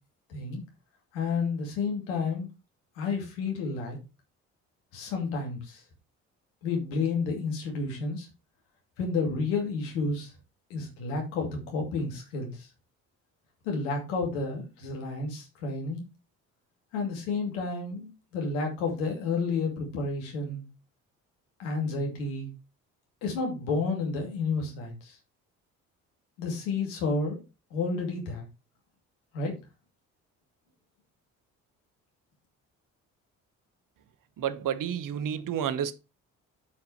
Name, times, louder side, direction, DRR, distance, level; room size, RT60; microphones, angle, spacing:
voice 1, 0.3-0.6 1.1-2.5 3.0-4.0 4.9-5.8 6.6-8.3 9.0-10.3 10.7-12.7 13.6-16.0 16.9-20.6 21.6-22.5 23.2-25.2 26.4-27.4 27.7-28.5 29.3-29.5, left 4 dB, 80° left, 2.4 m, -31 dB
voice 2, 34.4-35.9, right 9 dB, 55° right, 1.0 m, -30 dB
8.5 x 4.8 x 4.4 m
hypercardioid pair, 50°, 39 cm